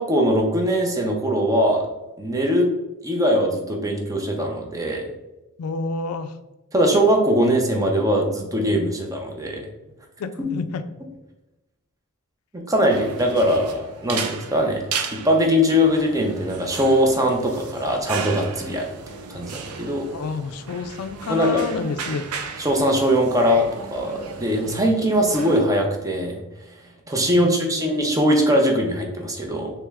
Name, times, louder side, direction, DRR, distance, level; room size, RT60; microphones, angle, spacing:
voice 1, 0.0-1.9 2.2-2.7 3.0-5.1 6.7-9.6 10.4-10.5 12.5-14.8 15.1-18.9 19.3-20.1 21.3-21.6 22.6-26.4 27.1-29.7, equal, 15° right, 2 dB, 0.6 m, -21 dB
voice 2, 5.6-6.3 10.2-10.8 20.1-22.3 27.3-27.8, left 4 dB, 70° left, 11 dB, 0.4 m, -29 dB
sound 1, 12.9-25.6, right 6 dB, 70° right, 0.5 m, -35 dB
3.4 x 3.0 x 3.4 m, 1.0 s
head